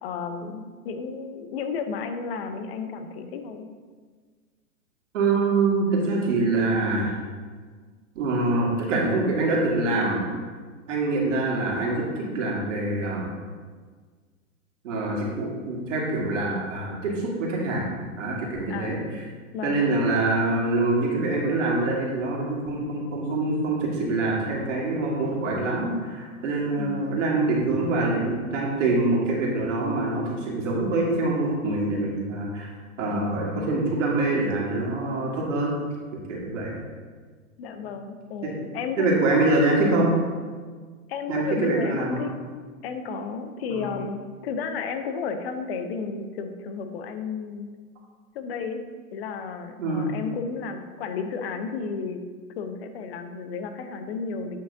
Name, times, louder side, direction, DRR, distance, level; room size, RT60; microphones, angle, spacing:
voice 1, 0.0-3.7 18.7-19.2 19.5-20.0 26.8-27.3 36.7-36.8 37.6-39.4 41.1-42.3 42.8-47.7 48.3-48.8 49.1-52.2 52.6-54.6, left 5 dB, 45° left, 8 dB, 0.7 m, -33 dB
voice 2, 5.1-7.1 8.2-10.2 10.9-13.3 14.8-17.9 18.2-19.0 19.6-32.7 33.0-35.7 36.3-36.8 38.4-38.6 39.0-40.1 41.3-42.3 43.7-43.8 49.8-50.1, right 2 dB, 60° right, -3 dB, 1.9 m, -25 dB
8.8 x 5.2 x 2.7 m, 1.6 s
hypercardioid pair, 120°, 43 cm